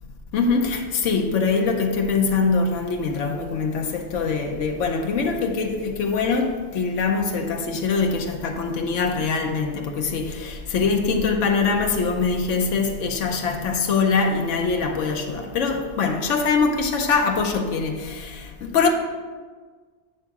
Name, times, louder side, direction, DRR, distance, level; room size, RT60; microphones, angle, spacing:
voice 1, 0.3-18.9, left 4 dB, 80° left, 1.1 m, -23 dB
8.8 x 3.6 x 5.9 m
omnidirectional pair, 1.3 m